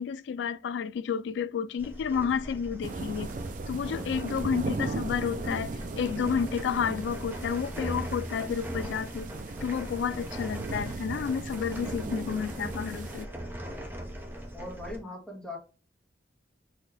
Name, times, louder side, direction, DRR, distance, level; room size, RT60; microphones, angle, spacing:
voice 1, 0.0-3.4 3.7-9.3 9.6-13.3, left 7 dB, 85° left, 0.3 m, -31 dB
sound 1, 1.8-15.0, equal, 10° right, 0.8 m, -39 dB
sound 2, 2.8-13.2, right 3 dB, 45° right, 0.4 m, -38 dB
voice 2, 14.5-15.6, left 2 dB, 5° left, 1.5 m, -40 dB
4.3 x 3.0 x 4.0 m
head